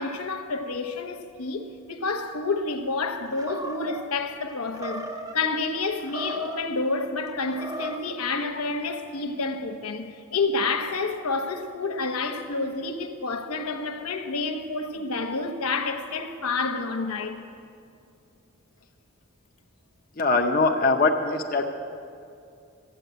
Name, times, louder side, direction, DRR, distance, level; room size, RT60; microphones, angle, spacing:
voice 1, 0.0-17.4, left 3 dB, 85° left, 1.0 m, -29 dB
Animal, 3.3-4.0 4.7-5.4 6.0-6.7 7.4-8.1, right 1 dB, 15° right, 0.7 m, -36 dB
voice 2, 20.2-21.6, left 3 dB, 40° left, 0.7 m, -22 dB
13.5 x 8.8 x 8.0 m
head